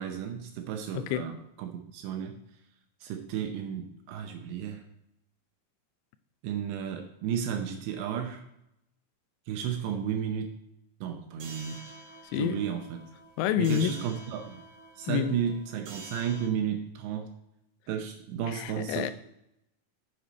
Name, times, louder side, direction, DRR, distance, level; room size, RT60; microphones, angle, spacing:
voice 1, 0.0-2.3 3.0-4.8 6.4-8.4 9.5-10.5 11.0-11.9 12.3-13.0 13.6-14.6 15.0-17.3 17.9-19.1, right 8 dB, 80° right, 4 dB, 2.6 m, -33 dB
voice 2, 0.9-1.3 12.3-12.6 13.4-13.9 15.1-15.4 18.5-19.1, left 10 dB, 85° left, 12 dB, 3.1 m, -28 dB
sound 1, 11.4-16.5, right 2 dB, 65° right, 1.8 m, -48 dB
8.8 x 6.9 x 4.0 m, 0.82 s
omnidirectional pair, 5.8 m